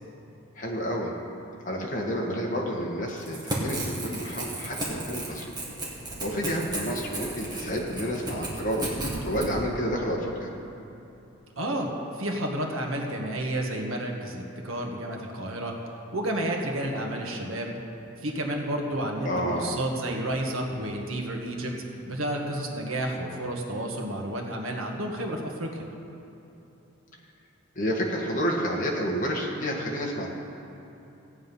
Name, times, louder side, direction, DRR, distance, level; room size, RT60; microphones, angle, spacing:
voice 1, 0.6-1.1 1.6-5.5 6.2-8.9 9.2-10.5 19.3-19.8 27.8-30.3, equal, 40° left, -2 dB, 1.8 m, -30 dB
Crackle / Tearing, 3.1-9.5, right 1 dB, 20° right, 1.9 m, -34 dB
voice 2, 11.6-15.8 16.1-17.7 18.2-21.7 22.1-25.9, right 1 dB, 75° right, 1 dB, 1.5 m, -31 dB
15.5 x 8.9 x 5.5 m, 3.0 s
head